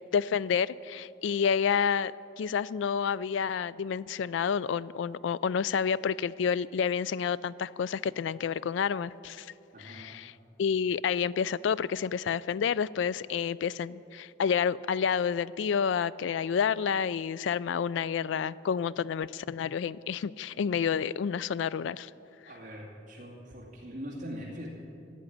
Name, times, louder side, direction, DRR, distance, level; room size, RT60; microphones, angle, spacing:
voice 1, 0.0-2.1 2.4-9.5 9.8-10.3 10.6-22.1, left 7 dB, 70° left, 19 dB, 0.3 m, -29 dB
voice 2, 9.7-10.1 22.5-24.7, equal, 40° right, -6 dB, 2.3 m, -42 dB
13.0 x 8.3 x 10.0 m, 2.8 s
head